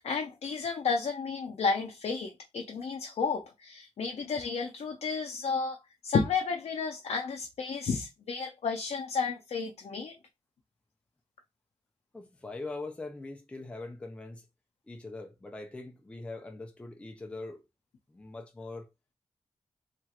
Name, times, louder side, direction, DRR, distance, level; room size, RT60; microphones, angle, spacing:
voice 1, 0.0-5.8 6.0-10.1, left 5 dB, 70° left, 0.5 m, -32 dB
voice 2, 12.1-14.4 14.9-17.6 18.1-18.9, left 2 dB, 10° left, 0.4 m, -42 dB
2.9 x 2.4 x 2.8 m
wide cardioid pair, 175°, 11 cm